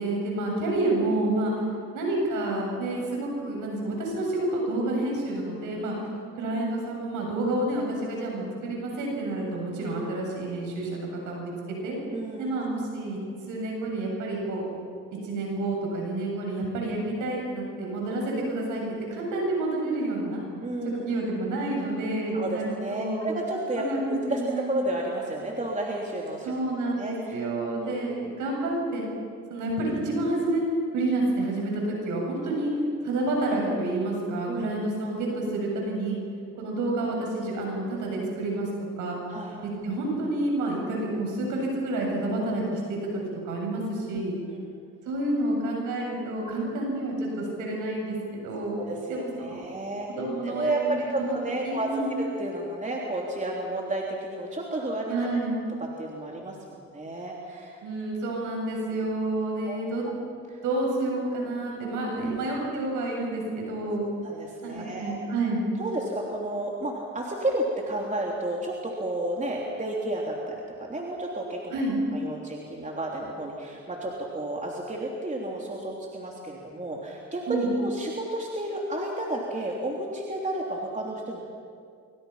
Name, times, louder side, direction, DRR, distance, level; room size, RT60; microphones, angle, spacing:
voice 1, 0.0-1.5 1.9-5.9 6.4-11.5 11.8-12.0 12.4-13.2 13.5-14.6 15.2-18.8 19.1-20.4 20.8-23.3 23.8-24.7 26.4-29.0 29.5-30.6 30.9-32.7 33.0-36.2 36.6-38.7 39.0-39.2 39.6-44.3 45.0-48.8 49.1-49.7 50.1-51.4 51.6-52.1 55.1-55.5 57.8-60.0 60.6-64.0 64.6-65.6 71.7-72.0 77.5-77.7, right 2 dB, 85° right, -1 dB, 7.9 m, -29 dB
voice 2, 12.1-12.5 20.6-21.1 22.3-26.5 26.9-27.4 27.7-28.2 32.4-32.5 34.5-34.8 39.3-39.6 44.1-44.2 44.5-44.7 48.7-50.1 50.4-55.3 56.0-57.8 59.7-59.8 60.5-60.6 62.1-62.4 64.2-65.2 65.8-70.6 70.8-71.8 72.1-81.4, right 1 dB, 25° right, -2 dB, 3.5 m, -32 dB
25.5 x 24.5 x 5.9 m, 2.3 s
cardioid pair, 85°, 30 cm